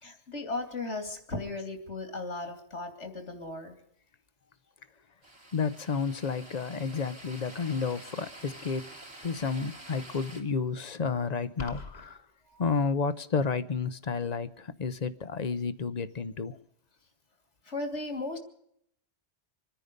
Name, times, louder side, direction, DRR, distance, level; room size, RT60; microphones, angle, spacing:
voice 1, 0.0-3.8 12.5-12.6 17.6-18.4, left 2 dB, 85° left, 6 dB, 3.0 m, -36 dB
sound 1, 5.2-10.4, right 1 dB, 60° right, 3.2 m, -48 dB
voice 2, 5.5-8.9 9.2-12.2 12.6-16.6, left 5 dB, 45° left, 15 dB, 0.7 m, -31 dB
sound 2, 11.6-12.1, left 3 dB, 60° left, 1.8 m, -40 dB
26.0 x 10.0 x 5.2 m, 0.70 s
omnidirectional pair, 1.2 m